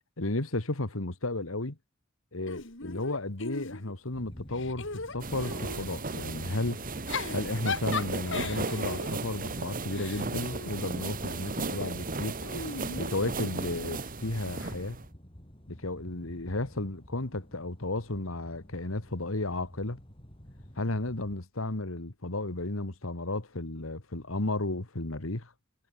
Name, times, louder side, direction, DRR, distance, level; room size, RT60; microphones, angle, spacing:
voice 1, 0.2-1.8 2.3-4.9 5.1-6.8 7.3-12.4 13.0-15.0 15.7-20.0 20.8-25.5, left 2 dB, 90° left, 2.1 m, -33 dB
Giggle / Chuckle chortle, 2.5-4.1 4.5-5.9 6.9-11.3 12.4-13.8, left 4 dB, 65° left, 4.7 m, -38 dB
sound 1, 4.1-21.4, equal, 25° left, 4.4 m, -52 dB
sound 2, 5.2-15.1, right 3 dB, 45° right, 1.9 m, -35 dB
head